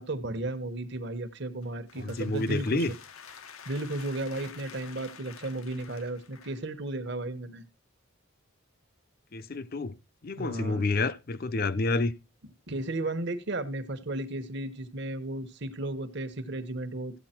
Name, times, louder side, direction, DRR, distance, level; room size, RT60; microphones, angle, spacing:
voice 1, 0.0-2.8 3.6-7.7 10.4-10.8 12.7-17.1, right 2 dB, 55° right, 1.1 m, -34 dB
sound 1, 1.6-6.7, left 7 dB, 85° left, 0.9 m, -49 dB
voice 2, 2.0-2.9 9.3-9.9 10.2-12.1, left 3 dB, 45° left, 0.6 m, -29 dB
14.5 x 8.5 x 4.4 m
head